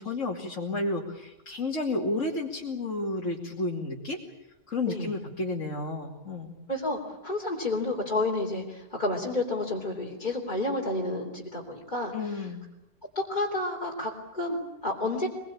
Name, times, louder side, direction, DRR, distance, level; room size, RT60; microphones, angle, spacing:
voice 1, 0.0-4.2 4.7-6.6 12.1-12.6, left 2 dB, 50° left, -1 dB, 3.0 m, -31 dB
voice 2, 6.7-12.5 13.2-15.3, left 2 dB, 25° left, -3 dB, 3.5 m, -30 dB
25.5 x 22.0 x 8.7 m, 0.90 s
omnidirectional pair, 1.7 m